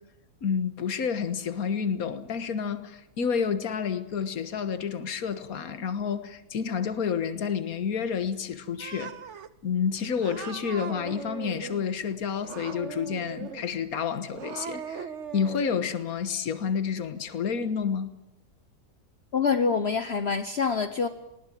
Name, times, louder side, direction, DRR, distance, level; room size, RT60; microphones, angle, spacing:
voice 1, 0.4-9.1 9.6-18.1, left 6 dB, 70° left, 1.8 m, -29 dB
Cat, 8.8-9.5 10.2-11.9 12.4-13.7 14.2-15.8, right 7 dB, 55° right, 1.3 m, -39 dB
voice 2, 19.3-21.1, left 5 dB, 45° left, 1.2 m, -25 dB
20.5 x 19.0 x 9.2 m
omnidirectional pair, 1.6 m